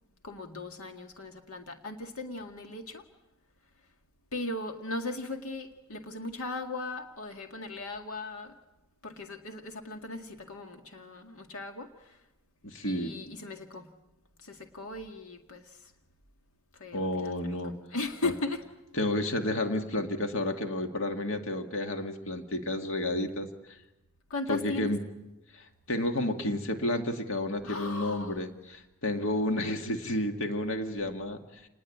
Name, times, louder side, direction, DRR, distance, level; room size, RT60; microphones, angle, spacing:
voice 1, 0.2-3.0 4.3-8.5 9.0-12.2 12.8-13.9 14.4-15.9 16.8-17.5 17.9-18.6 24.3-24.9 27.6-28.3, left 2 dB, 85° left, 4 dB, 2.0 m, -37 dB
voice 2, 12.6-13.1 16.9-17.7 18.2-18.3 18.9-23.5 24.5-25.0 25.5-31.4, left 1 dB, 65° left, 5 dB, 2.2 m, -31 dB
28.5 x 20.5 x 8.6 m, 0.97 s
head